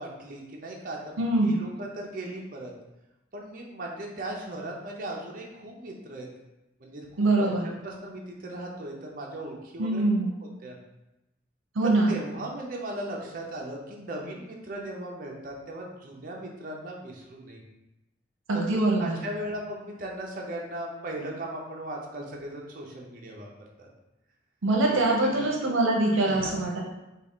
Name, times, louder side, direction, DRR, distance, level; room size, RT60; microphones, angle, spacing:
voice 1, 0.0-2.7 3.3-6.3 6.8-10.0 10.6-10.8 11.8-17.6 18.5-23.5 23.8-23.9 25.2-25.5 26.3-26.5, right 1 dB, 45° right, -1 dB, 0.6 m, -38 dB
voice 2, 1.2-1.6 7.2-7.7 9.8-10.3 11.7-12.1 18.5-19.2 24.6-26.8, right 2 dB, 80° right, -1 dB, 0.7 m, -23 dB
3.6 x 2.4 x 3.5 m, 0.94 s
head